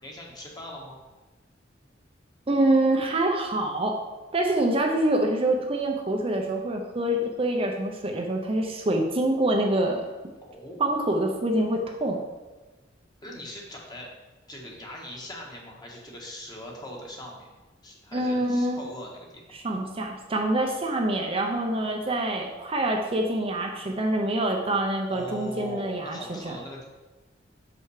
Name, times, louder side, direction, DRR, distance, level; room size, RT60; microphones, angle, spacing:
voice 1, 0.0-1.0 10.4-10.8 13.2-14.1 14.5-17.5 17.8-19.4 25.1-26.9, equal, 20° left, -2 dB, 1.4 m, -40 dB
voice 2, 2.5-4.0 4.3-10.1 10.8-12.2 18.1-18.9 19.5-26.6, right 1 dB, 30° right, 2 dB, 0.6 m, -26 dB
6.0 x 5.6 x 4.9 m, 1.2 s
head